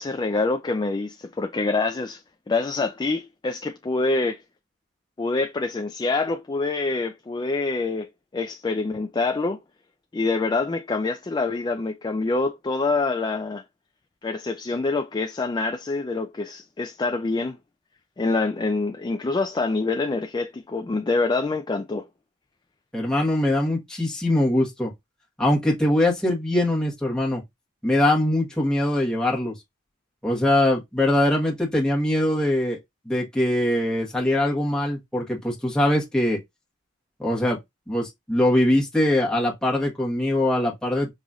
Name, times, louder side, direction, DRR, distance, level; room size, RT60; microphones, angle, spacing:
voice 1, 0.0-4.4 5.2-9.6 10.1-13.6 14.2-17.6 18.2-22.1, left 3 dB, 20° left, 0.3 m, -26 dB
voice 2, 22.9-24.9 25.4-27.4 27.8-29.5 30.2-32.8 33.0-36.4 37.2-37.6 37.9-41.1, left 1 dB, 5° left, 1.3 m, -22 dB
5.3 x 3.0 x 2.4 m
head